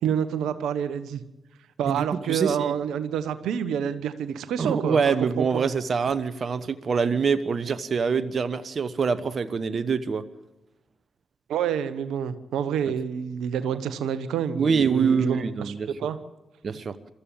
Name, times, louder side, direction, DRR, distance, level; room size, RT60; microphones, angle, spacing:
voice 1, 0.0-1.2 1.8-5.6 11.5-15.7 16.0-16.2, right 8 dB, 80° right, 12 dB, 1.1 m, -28 dB
voice 2, 1.9-2.7 4.6-10.2 14.5-15.9 16.6-17.0, right 5 dB, 55° right, 12 dB, 1.0 m, -25 dB
22.5 x 14.5 x 8.9 m, 1.0 s
hypercardioid pair, 40°, 0 cm